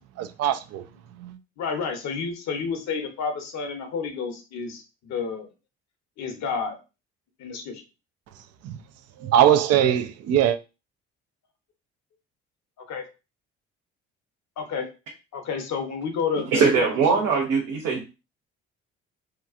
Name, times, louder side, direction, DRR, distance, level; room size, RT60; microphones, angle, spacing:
voice 1, 0.2-0.8 1.2-1.4 8.6-8.8 9.2-10.6, right 10 dB, 55° right, 0.4 m, -21 dB
voice 2, 1.6-5.5 6.2-6.8 7.4-7.8 12.9-13.1 14.6-14.9 15.3-16.9, left 5 dB, 60° left, 0.9 m, -30 dB
voice 3, 16.5-18.0, right 5 dB, 70° right, 0.8 m, -21 dB
2.9 x 2.3 x 2.4 m
hypercardioid pair, 60°, 31 cm